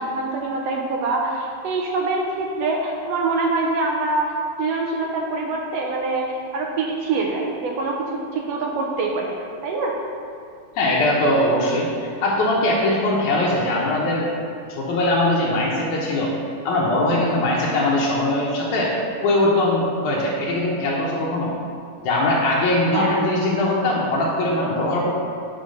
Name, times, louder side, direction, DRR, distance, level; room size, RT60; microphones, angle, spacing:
voice 1, 0.0-4.3 4.6-9.3 9.6-10.0 22.9-23.1, right 3 dB, 75° right, 0 dB, 1.5 m, -24 dB
voice 2, 10.8-14.3 14.7-16.3 16.6-18.9 19.2-21.5 22.0-25.1, left 1 dB, 80° left, -4 dB, 2.4 m, -21 dB
7.8 x 4.1 x 5.3 m, 2.3 s
omnidirectional pair, 3.5 m